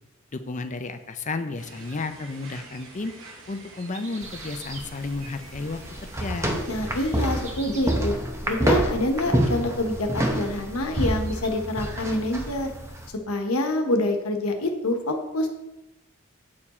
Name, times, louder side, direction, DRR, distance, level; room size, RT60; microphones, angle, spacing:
voice 1, 0.3-3.1 3.5-5.8 6.2-6.6, left 3 dB, 35° left, 9 dB, 0.5 m, -32 dB
sound 1, 1.6-7.5, right 2 dB, 65° right, 1.1 m, -47 dB
sound 2, 3.6-4.9 5.8-5.9 6.1-8.1 11.0-11.5, right 3 dB, 35° right, 1.0 m, -44 dB
sound 3, 4.2-13.1, right 1 dB, 15° right, 0.8 m, -28 dB
voice 2, 6.7-8.1 8.5-12.7 13.3-15.5, left 1 dB, 90° left, 4 dB, 1.1 m, -26 dB
8.5 x 4.6 x 4.3 m, 0.95 s
head